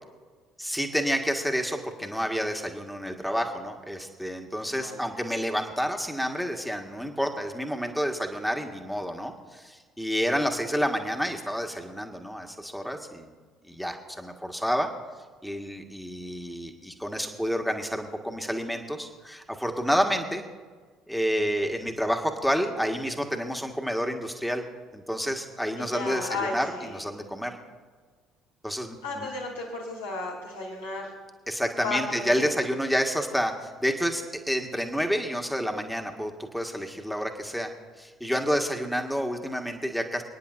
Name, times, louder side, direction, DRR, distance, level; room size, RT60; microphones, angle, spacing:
voice 1, 0.6-13.3 13.6-14.9 15.4-20.4 21.1-24.6 24.9-27.5 28.6-29.3 31.5-37.7 38.0-40.2, equal, ahead, 3 dB, 1.6 m, -29 dB
voice 2, 4.7-5.2 25.7-27.0 29.0-31.1 31.8-32.5, left 3 dB, 80° left, -4 dB, 3.2 m, -34 dB
29.0 x 9.9 x 2.6 m, 1.5 s
figure-of-eight pair, 55°, 0 cm